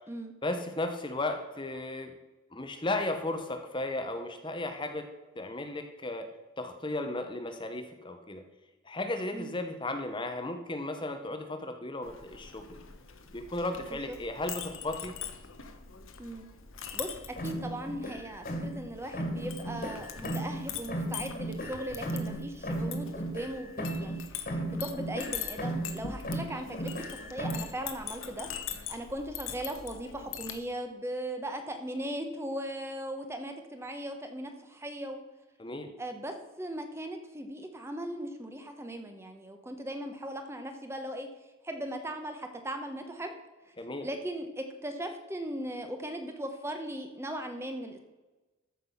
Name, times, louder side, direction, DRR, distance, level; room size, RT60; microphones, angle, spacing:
voice 1, 0.4-2.1 2.5-5.1 5.4-6.3 6.6-8.4 8.8-12.8 13.3-15.2 35.6-35.9 43.8-44.1, left 2 dB, 20° left, 6 dB, 0.9 m, -35 dB
Chink clink, 12.0-30.6, left 7 dB, 65° left, 1.2 m, -43 dB
voice 2, 16.9-28.5 28.9-35.2 36.0-41.3 41.6-43.3 44.0-48.0, right 1 dB, 10° right, 5 dB, 1.0 m, -38 dB
sound 1, 17.4-18.9 19.1-20.6 20.9-24.2 24.5-26.0 26.2-27.7, right 1 dB, 40° left, 2.0 m, -35 dB
14.0 x 6.0 x 5.7 m, 1.1 s
head